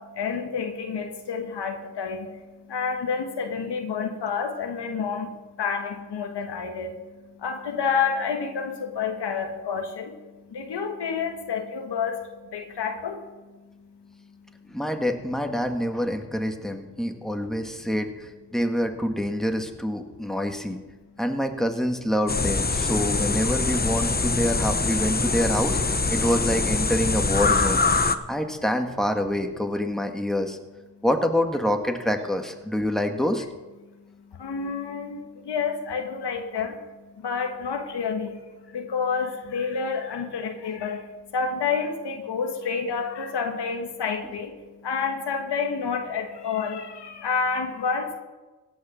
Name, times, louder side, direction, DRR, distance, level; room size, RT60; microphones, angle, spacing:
voice 1, 0.0-14.8 16.6-16.7 28.2-28.3 30.9-31.0 33.8-48.2, left 5 dB, 85° left, 4 dB, 1.5 m, -30 dB
voice 2, 14.7-20.8 21.2-27.8 28.3-30.6 31.0-33.5, equal, ahead, 5 dB, 1.8 m, -26 dB
sound 1, 22.3-28.2, left 3 dB, 25° left, 0.9 m, -24 dB
16.5 x 6.5 x 6.3 m, 1.2 s
supercardioid pair, 40°, 40 cm